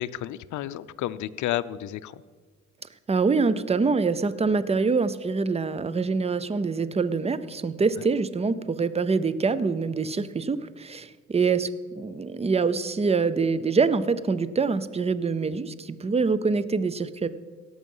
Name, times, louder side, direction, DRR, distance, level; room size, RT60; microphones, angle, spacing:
voice 1, 0.0-2.2, left 13 dB, 75° left, 15 dB, 0.5 m, -31 dB
voice 2, 3.1-11.7 12.0-17.3, right 4 dB, 20° right, 15 dB, 0.6 m, -25 dB
17.0 x 6.3 x 5.5 m, 1.4 s
cardioid pair, 90°, 30 cm